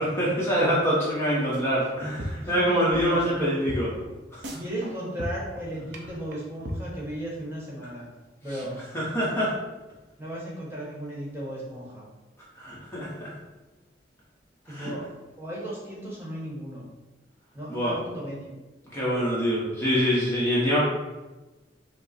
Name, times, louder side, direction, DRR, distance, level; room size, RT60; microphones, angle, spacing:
voice 1, 0.0-3.9 8.9-9.5 12.6-13.3 14.7-14.9 17.7-18.0 18.9-20.8, equal, 15° left, -8 dB, 0.9 m, -25 dB
sound 1, 1.5-2.6 2.9-3.0 3.3-3.4 3.7-4.1 4.4-4.9 5.2-5.6 5.9-6.0 6.3-6.4 6.7-6.8, right 1 dB, 75° right, 0.7 m, -34 dB
voice 2, 2.4-3.2 4.6-8.0 8.4-8.8 10.2-12.0 14.7-15.0 15.4-16.8 17.5-18.5, right 1 dB, 15° right, -6 dB, 1.2 m, -35 dB
5.1 x 2.1 x 4.1 m, 1.1 s
head